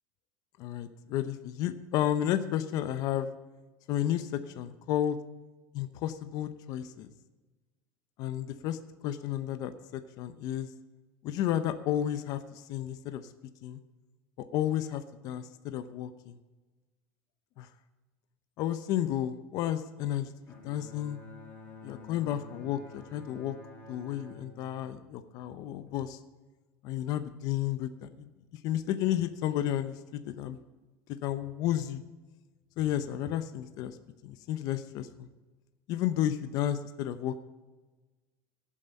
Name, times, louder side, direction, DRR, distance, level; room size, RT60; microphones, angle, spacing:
voice 1, 0.6-3.3 3.9-5.2 5.7-7.1 8.2-8.8 9.0-10.7 11.2-13.3 13.6-13.8 14.4-16.4 17.6-17.7 18.6-20.3 20.6-21.2 21.8-23.5 23.9-26.2 26.8-28.3 28.6-30.6 31.2-32.0 32.8-34.0 34.2-35.3 35.9-37.4, left 11 dB, 50° left, 10 dB, 0.8 m, -32 dB
Bowed string instrument, 20.5-25.9, left 3 dB, 25° left, 2.6 m, -51 dB
17.0 x 7.5 x 5.3 m, 1.2 s
cardioid pair, 155°, 8 cm